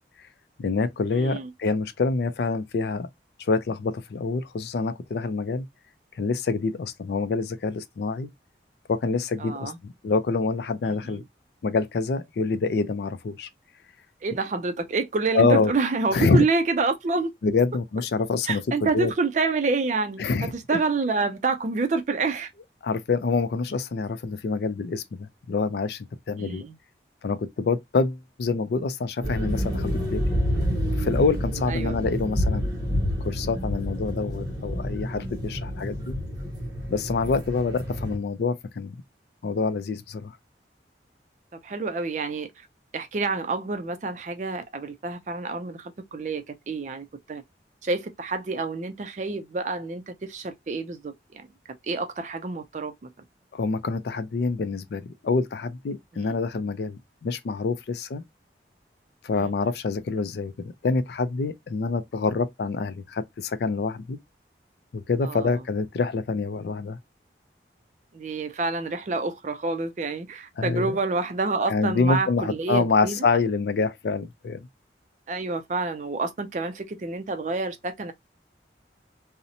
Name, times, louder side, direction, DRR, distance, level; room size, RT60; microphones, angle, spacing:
voice 1, 0.6-3.1 3.4-5.6 6.2-8.3 8.9-11.2 11.6-13.5 15.3-15.7 16.1-16.4 17.4-19.1 20.2-20.5 22.8-26.6 27.2-30.2 31.0-32.7 33.2-36.2 36.9-39.0 39.4-40.4 53.5-58.2 59.2-64.2 64.9-67.0 70.6-71.0 71.7-74.6, left 4 dB, 60° left, 0.3 m, -26 dB
voice 2, 1.1-1.5 9.4-9.8 11.1-11.2 14.2-17.3 18.4-22.5 26.4-26.7 31.7-32.0 41.6-42.5 42.9-47.4 47.8-51.5 51.9-52.9 56.1-56.4 59.3-59.5 65.2-65.6 68.1-73.2 75.3-78.1, right 3 dB, 40° right, 0.4 m, -28 dB
sound 1, 29.2-38.2, equal, 20° right, 0.8 m, -28 dB
2.6 x 2.0 x 2.6 m
head